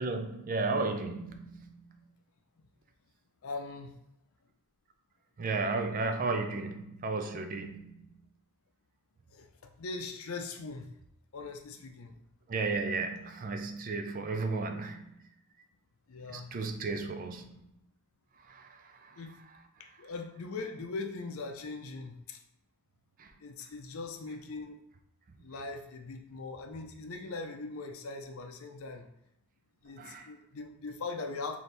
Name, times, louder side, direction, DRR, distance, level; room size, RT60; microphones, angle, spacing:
voice 1, 0.0-1.7 5.4-8.0 12.5-15.1 16.3-17.6 18.5-19.2 23.2-23.3 30.0-30.3, right 3 dB, 40° right, 0.4 m, -34 dB
voice 2, 3.4-3.9 9.3-10.9 11.3-12.2 16.1-16.5 19.2-19.3 19.8-22.4 23.4-24.8 25.4-29.1 29.8-31.6, left 3 dB, 70° left, 0.5 m, -40 dB
4.2 x 2.7 x 3.3 m
head